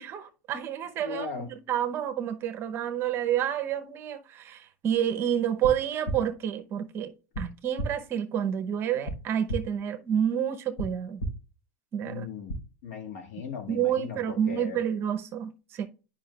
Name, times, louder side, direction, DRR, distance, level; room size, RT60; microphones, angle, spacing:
voice 1, 0.0-11.2 11.9-12.3 13.7-15.9, right 9 dB, 30° right, 0.7 m, -29 dB
voice 2, 1.0-1.5 12.0-12.6 12.8-14.8, left 5 dB, 70° left, 1.9 m, -38 dB
sound 1, 5.6-5.7 6.0-6.2 7.3-7.4 7.8-7.9 9.0-9.1 9.5-9.6 10.8-10.9 11.2-11.3 12.5-12.6, right 1 dB, 90° left, 3.5 m, -30 dB
10.5 x 5.1 x 2.3 m
supercardioid pair, 160°, 8 cm